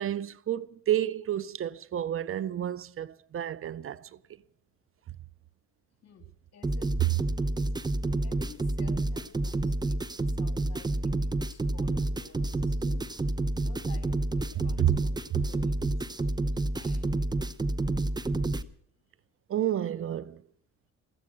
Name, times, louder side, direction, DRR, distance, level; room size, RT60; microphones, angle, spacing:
voice 1, 0.0-4.1 14.8-14.9 19.5-20.4, right 12 dB, 45° right, 0.5 m, -30 dB
voice 2, 6.0-7.8 8.2-13.1 13.6-15.9 16.7-17.1, left 6 dB, 60° left, 2.6 m, -55 dB
sound 1, 6.6-18.6, right 2 dB, 15° right, 0.8 m, -29 dB
17.0 x 13.5 x 6.3 m
cardioid pair, 90°, 30 cm